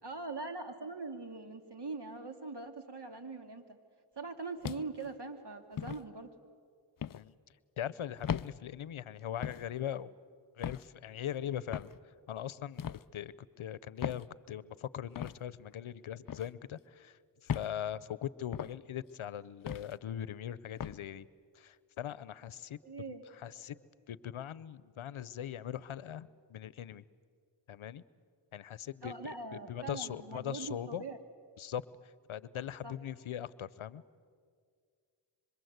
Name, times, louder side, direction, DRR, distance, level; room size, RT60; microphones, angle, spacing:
voice 1, 0.0-3.8 4.2-6.3 22.8-23.2 29.0-31.2 32.8-32.9, right 3 dB, 55° right, 7 dB, 2.6 m, -42 dB
sound 1, 4.6-5.1 5.8-6.0 7.0-7.2 8.2-8.5 9.4-9.7 10.6-10.9 11.7-12.0 12.8-13.0 14.0-14.3 15.1-15.4 16.3-16.5 17.5-17.7 18.5-18.8 19.7-19.9 20.8-21.0, left 8 dB, 45° left, 0.6 m, -37 dB
voice 2, 7.8-10.1 10.6-11.9 12.3-12.8 13.1-17.2 17.5-21.3 21.5-22.8 23.1-23.8 24.1-27.0 27.7-28.0 28.5-31.0 31.6-31.8 32.3-34.0, left 10 dB, 75° left, 19 dB, 0.8 m, -40 dB
26.0 x 24.5 x 8.0 m, 2.1 s
cardioid pair, 45°, 49 cm